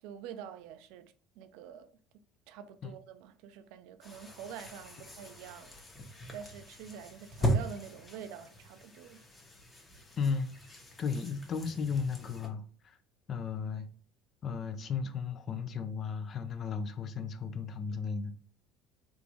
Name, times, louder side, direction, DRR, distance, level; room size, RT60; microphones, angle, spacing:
voice 1, 0.0-5.7 6.3-9.2, right 8 dB, 75° right, 0.4 m, -47 dB
sound 1, 4.0-12.5, right 1 dB, 20° left, 1.0 m, -39 dB
voice 2, 10.2-10.5 11.0-13.0 13.3-13.9 14.4-18.3, left 5 dB, 45° left, 0.5 m, -35 dB
3.5 x 2.5 x 3.0 m
supercardioid pair, 95°, 0 cm